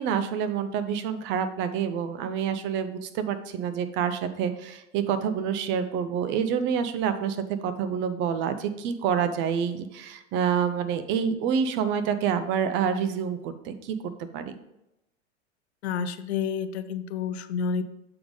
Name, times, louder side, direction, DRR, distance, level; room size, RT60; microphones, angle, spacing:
voice 1, 0.0-14.0 14.3-14.5, right 7 dB, 35° right, 10 dB, 0.5 m, -27 dB
voice 2, 15.8-17.8, left 6 dB, 60° left, 12 dB, 0.6 m, -29 dB
6.8 x 3.6 x 5.1 m, 0.89 s
hypercardioid pair, 100°, 36 cm